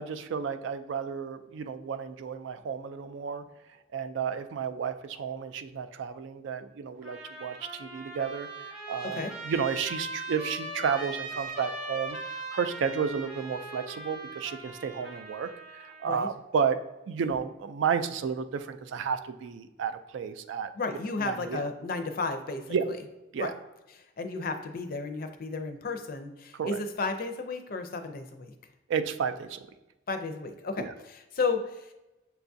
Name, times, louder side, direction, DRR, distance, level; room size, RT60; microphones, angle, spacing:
voice 1, 0.0-3.4 3.9-15.5 15.8-16.8 17.1-20.7 21.2-21.6 22.7-22.8 23.3-23.5 26.5-26.8 28.9-29.6 30.8-30.9, right 6 dB, 70° right, 9 dB, 0.3 m, -32 dB
Trumpet, 7.0-16.2, right 2 dB, 5° right, 0.7 m, -40 dB
voice 2, 20.8-23.0 23.3-23.5 23.9-28.5 30.1-31.9, left 3 dB, 45° left, 7 dB, 0.4 m, -33 dB
6.7 x 2.3 x 2.6 m, 1.0 s
head